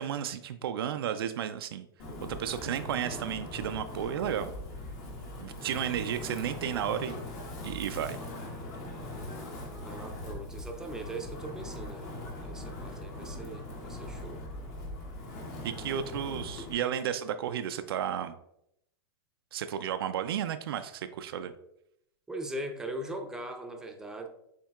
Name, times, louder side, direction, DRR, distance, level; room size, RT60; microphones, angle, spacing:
voice 1, 0.0-1.9 2.3-4.5 5.4-7.2 7.6-8.2 15.6-18.3 19.5-21.5, right 9 dB, 80° right, 9 dB, 0.4 m, -33 dB
Wind, 2.0-16.7, left 1 dB, 45° left, 1.2 m, -41 dB
voice 2, 9.8-14.4 22.3-24.3, right 1 dB, 5° right, 3 dB, 0.6 m, -40 dB
7.1 x 2.8 x 2.3 m, 0.77 s
hypercardioid pair, 120°, 12 cm